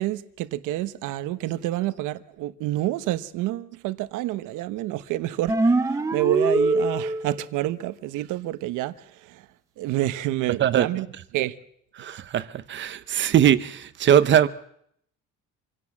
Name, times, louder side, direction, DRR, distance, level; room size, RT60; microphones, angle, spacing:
voice 1, 0.0-9.5 9.8-11.1 11.3-11.5, right 15 dB, 85° right, 1.2 m, -28 dB
sound 1, 5.5-7.5, right 2 dB, 10° right, 1.0 m, -23 dB
voice 2, 10.6-11.0 12.0-14.5, right 10 dB, 40° right, 0.8 m, -21 dB
26.0 x 17.5 x 7.3 m
cardioid pair, 175°, 30 cm